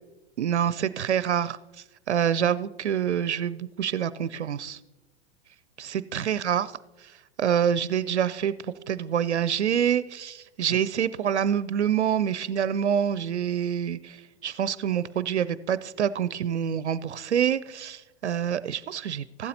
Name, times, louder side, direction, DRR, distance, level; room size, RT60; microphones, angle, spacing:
voice 1, 0.4-1.6 2.1-4.8 5.8-6.7 7.4-8.5 8.9-14.2 14.4-19.5, right 9 dB, 90° right, 17 dB, 0.5 m, -26 dB
14.5 x 12.0 x 2.8 m, 1.0 s
hypercardioid pair, 100°, 33 cm